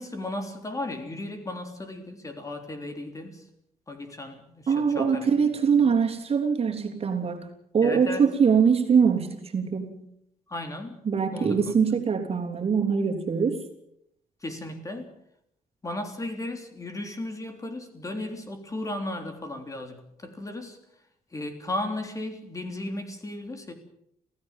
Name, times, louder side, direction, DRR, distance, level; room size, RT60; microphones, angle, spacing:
voice 1, 0.0-3.5 3.9-5.4 5.8-6.0 7.8-8.3 10.5-11.0 11.3-12.0 14.4-15.1 15.8-20.8 21.3-23.7, left 1 dB, 20° left, 5 dB, 3.5 m, -35 dB
voice 2, 4.7-7.5 7.7-10.0 11.0-13.6, right 6 dB, 45° right, 3 dB, 3.2 m, -23 dB
27.0 x 16.5 x 7.4 m, 0.75 s
cardioid pair, 135°, 15 cm